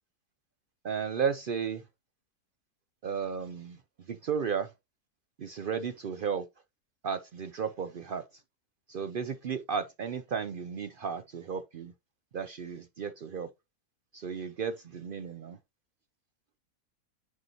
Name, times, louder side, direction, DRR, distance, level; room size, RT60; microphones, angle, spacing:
voice 1, 0.8-1.8 3.0-3.8 4.1-4.7 5.4-6.5 7.0-8.2 8.9-11.9 12.3-13.5 14.1-15.6, right 6 dB, 85° right, 0.4 m, -34 dB
9.7 x 4.0 x 2.9 m
omnidirectional pair, 1.6 m